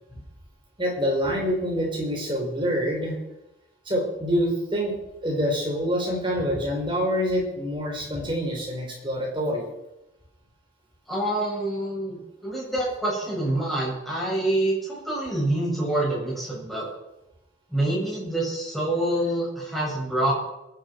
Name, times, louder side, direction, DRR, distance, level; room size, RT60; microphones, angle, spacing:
voice 1, 0.8-3.2 3.8-4.9 5.2-9.6, equal, 25° right, -1 dB, 4.6 m, -26 dB
voice 2, 11.1-16.9 17.7-20.3, right 1 dB, ahead, -6 dB, 7.6 m, -26 dB
22.5 x 10.5 x 4.8 m, 0.90 s
head